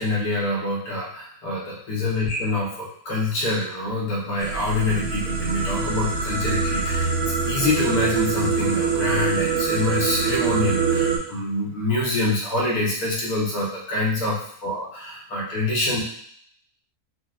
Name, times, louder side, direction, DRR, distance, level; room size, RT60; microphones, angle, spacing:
voice 1, 0.0-16.0, left 2 dB, 70° left, -4 dB, 1.2 m, -25 dB
sound 1, 4.4-11.2, right 5 dB, 85° right, 1.2 m, -24 dB
4.0 x 2.2 x 2.4 m, 0.64 s
omnidirectional pair, 1.7 m